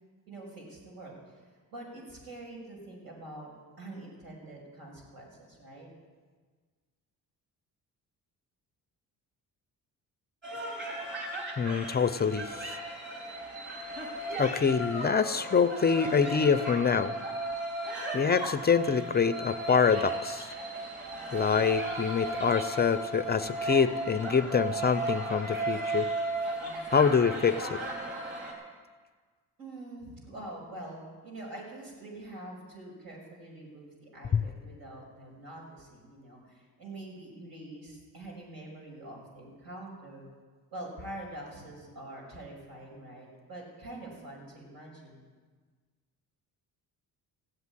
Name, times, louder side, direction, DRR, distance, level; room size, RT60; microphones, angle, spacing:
voice 1, 0.3-3.5 3.8-5.9 26.6-26.9 29.6-40.3 40.7-45.2, right 1 dB, 70° right, -1 dB, 6.6 m, -45 dB
sound 1, 10.4-28.5, right 2 dB, 30° right, 4.7 m, -35 dB
voice 2, 11.6-12.8 14.4-17.1 18.1-20.5 21.3-26.1 26.9-27.8 34.3-34.4, left 6 dB, 25° left, 11 dB, 0.5 m, -26 dB
16.0 x 8.4 x 9.7 m, 1.5 s
cardioid pair, 115°, 37 cm